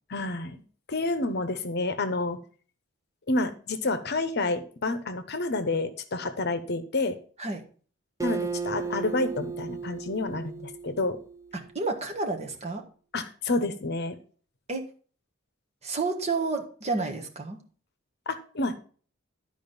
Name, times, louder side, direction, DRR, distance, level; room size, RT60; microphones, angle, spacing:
voice 1, 0.1-0.6 0.9-2.4 3.3-7.2 8.2-11.2 13.1-14.2 18.3-18.8, left 2 dB, 55° left, 10 dB, 1.0 m, -29 dB
Acoustic guitar, 8.2-11.7, right 5 dB, 15° right, 0.7 m, -35 dB
voice 2, 11.5-12.8 14.7-14.8 15.8-17.6, right 3 dB, 30° right, 3 dB, 1.6 m, -30 dB
11.5 x 4.9 x 5.4 m, 0.42 s
head